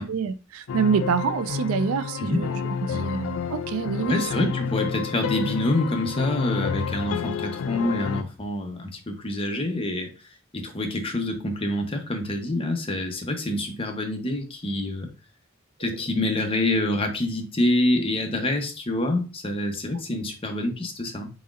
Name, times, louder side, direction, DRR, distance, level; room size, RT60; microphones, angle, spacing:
voice 1, 0.1-4.5, right 6 dB, 85° right, 0.4 m, -27 dB
sound 1, 0.7-8.2, left 6 dB, 80° left, 0.4 m, -30 dB
voice 2, 4.1-10.1 10.5-15.1 15.8-21.3, left 1 dB, 25° left, 0.7 m, -26 dB
4.1 x 4.0 x 2.4 m
head